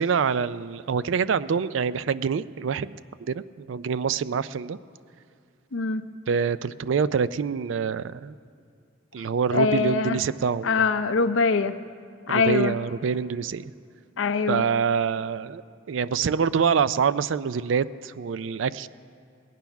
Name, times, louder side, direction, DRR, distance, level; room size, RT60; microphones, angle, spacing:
voice 1, 0.0-4.8 6.3-8.3 9.1-10.8 12.3-13.7 14.5-15.6 15.9-18.9, right 6 dB, 70° right, 16 dB, 0.4 m, -26 dB
voice 2, 9.5-10.2 10.6-11.7 12.3-12.7 14.2-14.6, left 4 dB, 80° left, 9 dB, 0.7 m, -23 dB
20.5 x 9.2 x 5.9 m, 2.4 s
head